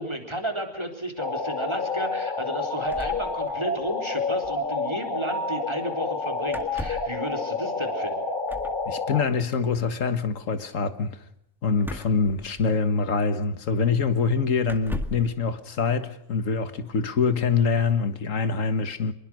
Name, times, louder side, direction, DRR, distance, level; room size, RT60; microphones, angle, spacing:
voice 1, 0.0-8.2, right 1 dB, 20° right, 4.1 m, -32 dB
sound 1, 1.2-9.2, left 3 dB, 35° left, 2.1 m, -29 dB
sound 2, 2.9-3.9 4.2-4.3 4.4-4.7 6.5-7.2 8.5-8.8 11.8-13.0 13.8-13.9 14.6-15.3, equal, ahead, 2.0 m, -37 dB
voice 2, 8.9-11.2 11.6-19.1, left 5 dB, 65° left, 1.9 m, -25 dB
26.0 x 23.0 x 6.3 m
omnidirectional pair, 1.5 m